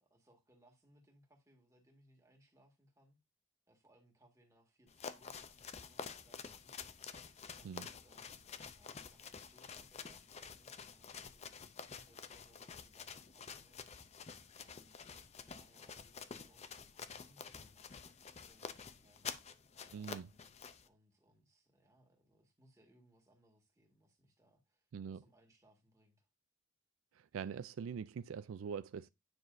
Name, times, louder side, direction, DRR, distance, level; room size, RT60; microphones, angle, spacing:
voice 1, 0.0-3.2 3.7-7.0 7.5-14.1 14.6-19.7 19.9-24.9 25.1-26.3, right 1 dB, 15° right, 1.7 m, -70 dB
sound 1, 4.9-20.9, left 6 dB, 30° left, 0.5 m, -49 dB
voice 2, 19.9-20.3 24.9-25.2 27.1-29.1, right 7 dB, 80° right, 0.3 m, -43 dB
9.6 x 6.0 x 2.6 m
head